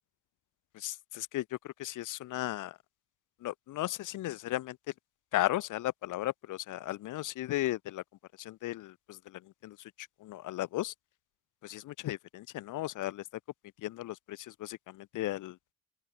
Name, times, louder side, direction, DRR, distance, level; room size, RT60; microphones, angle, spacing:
voice 1, 0.7-2.8 3.4-4.8 5.3-8.0 8.4-10.9 11.6-13.3 13.8-15.6, left 15 dB, 90° left, 4.8 m, -36 dB
open air
cardioid pair, 90°, 30 cm